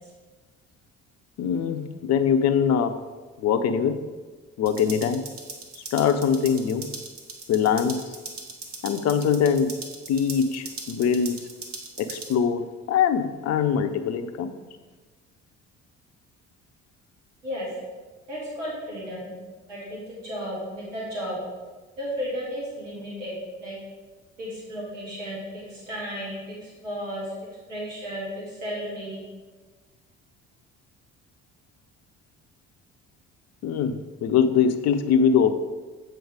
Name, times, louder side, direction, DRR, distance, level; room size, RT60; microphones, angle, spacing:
voice 1, 1.4-3.0 3.4-4.0 4.6-5.3 5.8-6.9 7.5-8.2 8.8-11.4 12.0-14.5 33.6-34.0 34.2-35.5, left 7 dB, 45° left, 9 dB, 0.6 m, -23 dB
sound 1, 4.7-12.3, right 3 dB, 40° right, 1.3 m, -40 dB
voice 2, 18.3-19.3 19.7-21.4 22.0-23.4 23.6-23.8 24.4-27.3 27.7-29.2, equal, 80° right, -6 dB, 2.0 m, -34 dB
7.8 x 4.5 x 5.0 m, 1.3 s
figure-of-eight pair, 45°, 37 cm